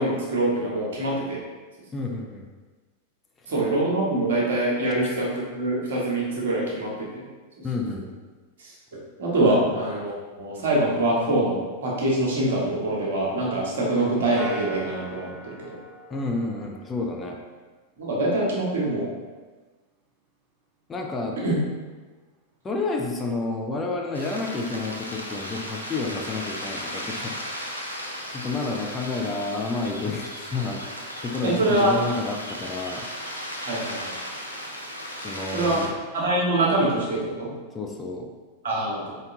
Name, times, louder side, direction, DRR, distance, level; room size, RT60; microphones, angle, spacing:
voice 1, 0.0-1.4 3.5-7.2 8.9-10.1 10.4-15.8 18.0-19.1 21.4-21.5 31.4-31.9 33.7-34.1 35.5-35.8 36.1-37.5 38.6-39.1, right 1 dB, 60° right, -4 dB, 1.3 m, -24 dB
voice 2, 1.9-2.5 7.6-8.0 9.6-9.7 16.1-17.4 20.9-21.4 22.6-27.3 28.3-30.8 31.2-33.0 35.2-35.9 37.7-38.3, left 3 dB, 20° left, 1 dB, 0.5 m, -30 dB
sound 1, 14.4-17.1, right 2 dB, 20° right, 0.8 m, -39 dB
sound 2, 24.1-35.9, equal, 90° right, 0.6 m, -36 dB
4.0 x 3.5 x 3.7 m, 1.3 s
figure-of-eight pair, 90°, 0 cm